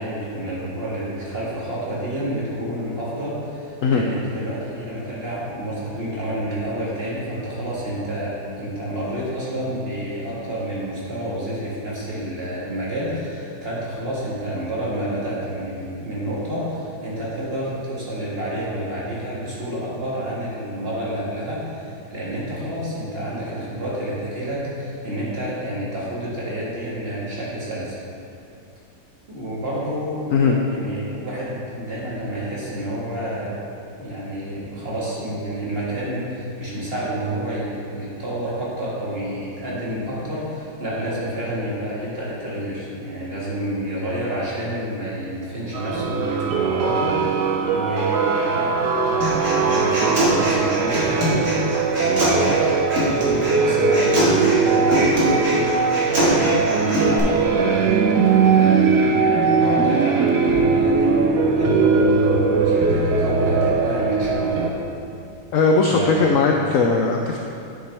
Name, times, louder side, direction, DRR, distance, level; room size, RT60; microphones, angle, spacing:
voice 1, 0.0-28.0 29.3-33.6 34.0-51.5 51.8-64.7 65.8-66.7, right 1 dB, 35° right, -7 dB, 1.8 m, -29 dB
sound 1, 45.7-64.7, right 4 dB, 75° right, 1.3 m, -20 dB
Human voice, 49.2-57.2, equal, 60° right, 2.4 m, -24 dB
voice 2, 65.5-67.4, left 4 dB, 70° left, 1 dB, 0.8 m, -18 dB
9.7 x 6.1 x 3.4 m, 2.7 s
omnidirectional pair, 1.8 m